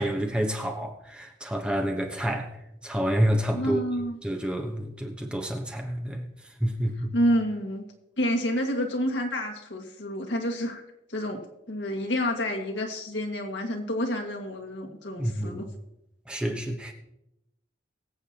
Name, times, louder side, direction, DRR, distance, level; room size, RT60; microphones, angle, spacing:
voice 1, 0.0-2.5 2.8-3.8 4.2-6.3 6.6-7.1 15.2-15.6 16.3-16.9, equal, 5° right, 1.0 m, -28 dB
voice 2, 3.5-4.2 7.1-7.8 8.2-10.8 11.1-11.4 11.7-15.7, equal, 75° left, 2.0 m, -28 dB
23.0 x 8.1 x 2.9 m
head